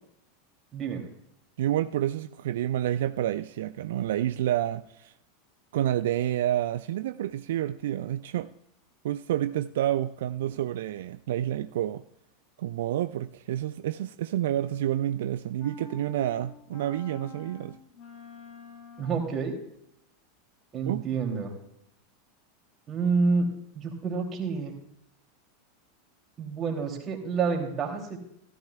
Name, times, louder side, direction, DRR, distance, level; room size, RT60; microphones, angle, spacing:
voice 1, 0.7-1.1 19.0-19.5 20.7-21.5 22.9-23.5 23.7-24.7 26.4-28.2, right 4 dB, 30° right, 2.7 m, -28 dB
voice 2, 1.6-5.1 5.7-8.5 9.0-12.0 12.6-17.8 20.8-21.0, right 12 dB, 60° right, 0.3 m, -29 dB
sound 1, 15.6-19.5, left 5 dB, 40° left, 1.8 m, -47 dB
15.5 x 13.5 x 2.3 m
figure-of-eight pair, 85°, 0 cm